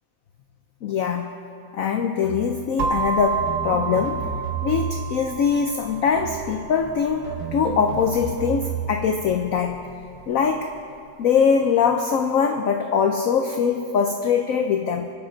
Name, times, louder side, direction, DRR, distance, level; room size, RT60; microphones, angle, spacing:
voice 1, 0.8-1.3 1.7-4.2 4.6-9.8 10.3-10.7 11.2-15.1, left 6 dB, 65° left, 5 dB, 0.8 m, -22 dB
sound 1, 2.2-2.6 3.3-5.2 6.2-6.6 7.2-9.0, right 6 dB, 60° right, 3.0 m, -31 dB
sound 2, 2.8-10.6, right 5 dB, 90° right, 1.7 m, -31 dB
25.0 x 8.8 x 3.9 m, 2.4 s
omnidirectional pair, 2.1 m